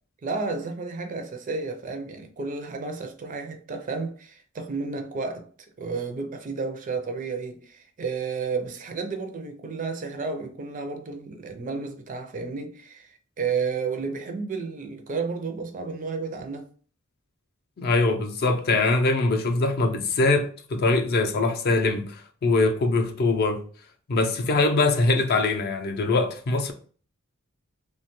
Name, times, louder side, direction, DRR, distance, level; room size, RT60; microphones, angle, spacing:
voice 1, 0.2-5.5 5.8-16.7, right 4 dB, 40° right, 0.4 m, -32 dB
voice 2, 17.8-23.6 24.1-26.7, left 3 dB, 45° left, 0.4 m, -23 dB
2.8 x 2.2 x 3.0 m
head